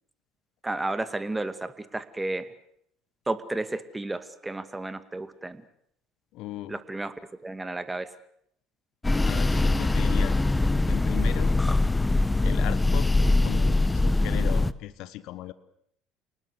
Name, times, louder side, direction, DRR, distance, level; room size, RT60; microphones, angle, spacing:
voice 1, 0.6-2.5 3.3-5.6 6.7-7.1 7.4-8.1, right 2 dB, 15° right, 12 dB, 2.2 m, -32 dB
voice 2, 6.3-6.8 9.2-10.4 10.9-11.6 12.4-15.5, left 15 dB, 65° left, 16 dB, 1.3 m, -37 dB
sound 1, 9.0-14.7, left 2 dB, 15° left, 1.1 m, -22 dB
29.0 x 19.5 x 8.2 m, 0.71 s
hypercardioid pair, 65°, 0 cm